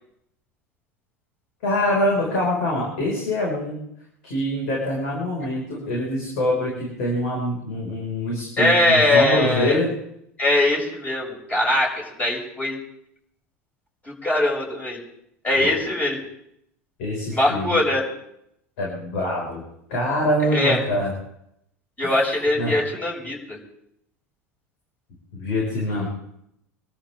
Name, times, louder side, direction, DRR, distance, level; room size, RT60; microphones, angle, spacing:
voice 1, 1.6-3.8 4.2-9.9 15.6-15.7 17.0-17.8 18.8-19.6 19.9-21.1 22.0-22.2 22.6-22.7 25.3-26.1, left 1 dB, 65° left, -3 dB, 5.9 m, -24 dB
voice 2, 8.6-9.8 10.4-12.8 14.0-15.0 15.4-16.2 17.3-18.0 20.4-20.8 22.0-23.6, left 1 dB, 20° left, -2 dB, 7.5 m, -21 dB
26.0 x 13.5 x 3.8 m, 0.76 s
figure-of-eight pair, 80°, 8 cm